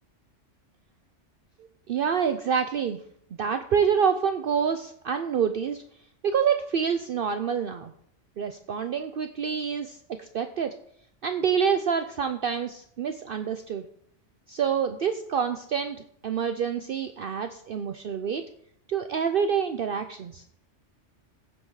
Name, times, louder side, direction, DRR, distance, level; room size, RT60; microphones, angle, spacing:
voice 1, 1.9-3.0 3.4-5.8 6.2-7.9 8.4-10.7 11.2-13.9 14.5-18.4 18.9-20.4, right 7 dB, 55° right, 8 dB, 0.7 m, -27 dB
15.5 x 6.3 x 4.7 m, 0.68 s
omnidirectional pair, 1.3 m